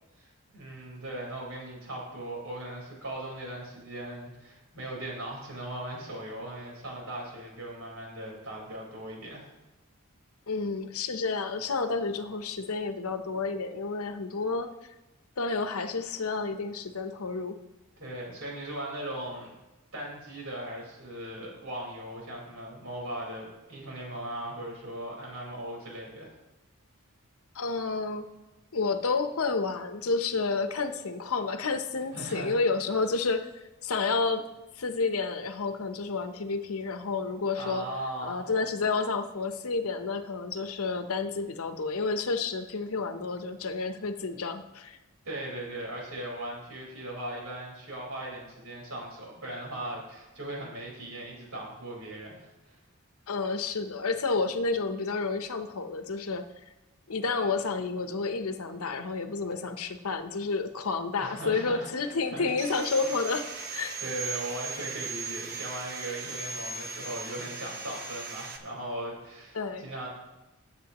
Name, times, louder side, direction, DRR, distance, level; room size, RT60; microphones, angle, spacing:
voice 1, 0.5-9.5 18.0-19.5 19.9-26.3 32.1-32.6 37.5-38.4 45.2-52.8 61.2-62.5 64.0-70.1, right 1 dB, 85° right, -2 dB, 4.4 m, -38 dB
voice 2, 10.5-14.7 15.4-17.6 27.5-28.2 28.7-33.5 33.8-34.4 34.8-37.9 38.2-45.0 53.3-56.5 57.1-64.0 69.5-69.9, left 4 dB, 80° left, 9 dB, 0.8 m, -30 dB
Sawing, 62.6-68.6, right 5 dB, 45° right, 1.1 m, -38 dB
17.5 x 8.2 x 3.0 m, 1.0 s
head